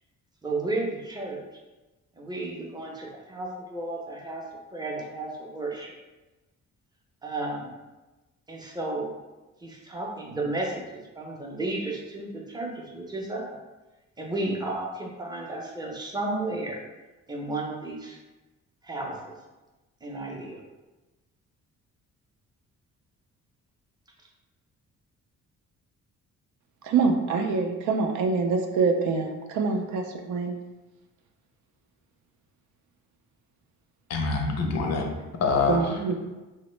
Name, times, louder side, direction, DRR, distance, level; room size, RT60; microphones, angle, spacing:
voice 1, 0.4-1.4 2.2-4.4 4.7-5.9 7.2-7.7 8.5-9.1 9.6-13.5 14.2-16.8 17.3-18.2 18.8-19.4 20.0-20.6, right 2 dB, 15° right, 0.6 m, -33 dB
voice 2, 26.8-30.5 35.7-36.1, right 4 dB, 75° right, 0.5 m, -25 dB
voice 3, 34.1-36.1, left 4 dB, 60° left, 0.6 m, -26 dB
3.0 x 2.1 x 3.0 m
cardioid pair, 90°, 30 cm